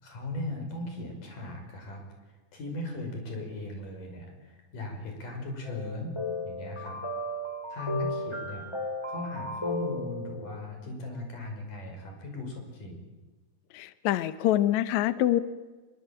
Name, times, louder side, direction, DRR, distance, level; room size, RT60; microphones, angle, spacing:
voice 1, 0.0-2.0 2.5-6.2 6.5-7.0 7.7-8.7 9.1-13.1, left 2 dB, 55° left, 3 dB, 7.1 m, -38 dB
sound 1, 5.6-10.6, left 1 dB, 5° left, 2.6 m, -35 dB
voice 2, 13.7-15.4, left 13 dB, 75° left, 13 dB, 1.7 m, -25 dB
25.0 x 23.0 x 8.9 m, 1.2 s
omnidirectional pair, 4.6 m